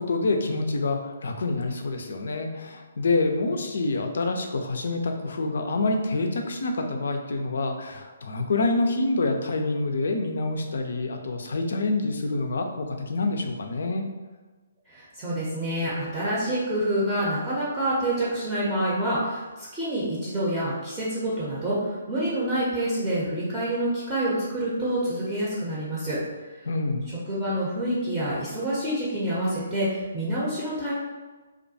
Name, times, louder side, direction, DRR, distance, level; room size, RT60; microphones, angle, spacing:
voice 1, 0.0-14.0 26.6-27.1, left 2 dB, 60° left, 4 dB, 0.3 m, -27 dB
voice 2, 14.9-26.2 27.3-30.9, right 1 dB, 15° right, -9 dB, 0.6 m, -27 dB
2.4 x 2.2 x 2.7 m, 1.3 s
figure-of-eight pair, 135°, 0 cm